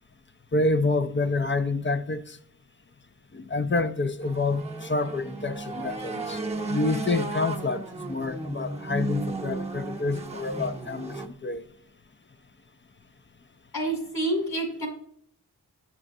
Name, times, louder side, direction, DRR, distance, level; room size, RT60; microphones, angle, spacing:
voice 1, 0.5-2.4 3.3-11.6, left 3 dB, 30° left, 0.4 m, -28 dB
sound 1, 4.2-11.3, right 2 dB, 15° right, 0.8 m, -34 dB
voice 2, 13.7-14.9, right 1 dB, 70° left, 2.4 m, -28 dB
7.6 x 6.0 x 2.6 m
wide cardioid pair, 55°, 39 cm